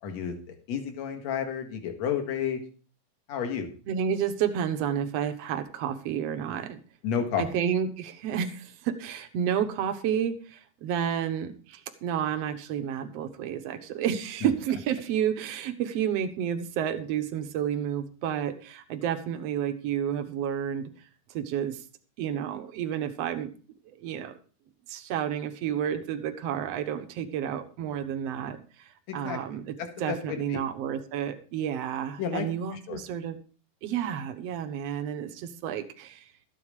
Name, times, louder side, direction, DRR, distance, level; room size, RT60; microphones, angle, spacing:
voice 1, 0.0-2.6 3.3-3.7 7.0-7.4 14.4-14.5 29.1-29.4 29.8-30.6 32.2-33.0, left 7 dB, 55° left, 5 dB, 2.7 m, -31 dB
voice 2, 3.9-6.8 7.4-20.9 21.3-21.8 22.2-23.5 24.0-24.3 24.9-28.6 29.1-29.7 30.0-33.4 33.8-36.2, right 9 dB, 60° right, 9 dB, 1.8 m, -30 dB
13.0 x 9.1 x 4.9 m, 0.39 s
omnidirectional pair, 4.0 m